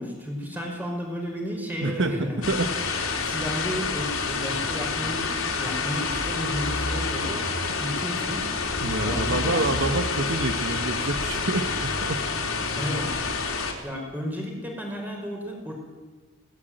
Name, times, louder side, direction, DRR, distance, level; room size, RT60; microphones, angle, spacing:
voice 1, 0.0-2.5 3.0-5.3 5.6-7.5 7.8-8.5 9.0-9.6 12.8-13.1 13.8-15.7, equal, 10° right, 1 dB, 5.4 m, -33 dB
voice 2, 1.8-2.7 8.8-12.2, right 2 dB, 60° right, 7 dB, 1.4 m, -27 dB
sound 1, 2.4-13.7, left 4 dB, 80° left, 3.7 m, -28 dB
20.5 x 18.0 x 9.1 m, 1.3 s
head